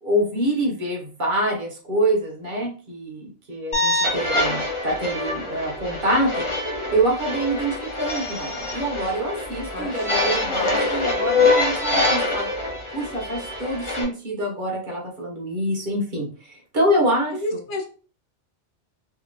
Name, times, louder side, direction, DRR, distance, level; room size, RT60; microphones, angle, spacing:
voice 1, 0.0-6.4 6.9-12.5 12.9-17.4, right 1 dB, 50° right, -1 dB, 0.9 m, -25 dB
sound 1, 3.7-14.0, left 2 dB, 30° left, 0.6 m, -25 dB
voice 2, 9.7-10.8 17.3-17.8, left 2 dB, 90° left, 4 dB, 1.0 m, -31 dB
2.8 x 2.5 x 2.5 m, 0.38 s
omnidirectional pair, 1.2 m